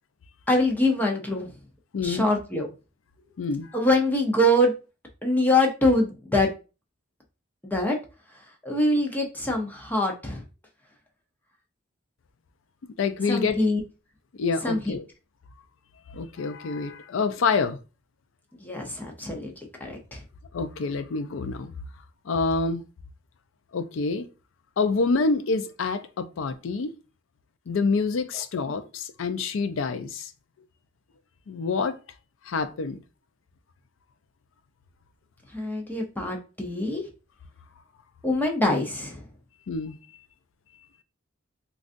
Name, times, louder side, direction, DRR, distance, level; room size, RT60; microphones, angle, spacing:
voice 1, 0.5-1.5 2.0-2.7 3.7-4.7 5.2-6.5 7.6-8.0 8.6-10.4 13.3-13.8 14.6-14.9 18.6-19.5 19.8-20.2 35.5-37.0 38.2-39.2, left 1 dB, 10° left, 0.6 m, -24 dB
voice 2, 1.9-2.3 3.4-3.7 13.0-13.6 14.3-15.0 16.1-17.8 20.5-21.7 22.3-22.8 23.7-24.3 24.8-26.9 27.7-30.3 31.5-32.0 32.5-33.0 39.7-40.0, left 4 dB, 90° left, 0.4 m, -27 dB
3.8 x 2.3 x 2.5 m
head